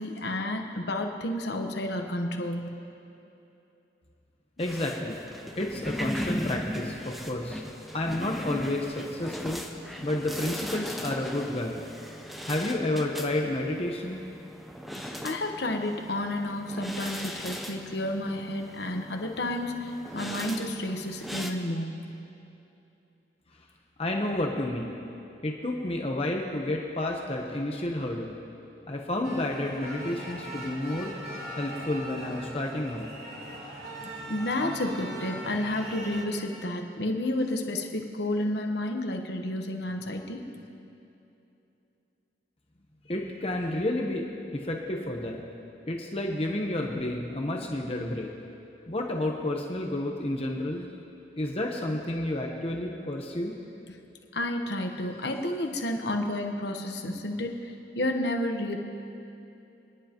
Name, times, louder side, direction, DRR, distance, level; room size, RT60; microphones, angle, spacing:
voice 1, 0.0-2.7 15.2-22.1 34.3-40.4 54.3-58.8, left 1 dB, 75° left, 3 dB, 1.1 m, -31 dB
voice 2, 4.6-5.2 5.6-7.6 7.9-9.6 10.0-11.8 12.4-14.2 24.0-25.0 25.4-28.4 28.9-31.1 31.6-33.1 43.0-44.2 44.5-45.4 45.9-48.3 48.9-50.9 51.3-53.5, left 1 dB, 35° left, 1 dB, 0.9 m, -30 dB
sound 1, 4.6-21.5, equal, ahead, 0.7 m, -38 dB
sound 2, 29.2-36.2, right 1 dB, 60° right, 2.8 m, -40 dB
29.0 x 10.5 x 3.0 m, 2.8 s
head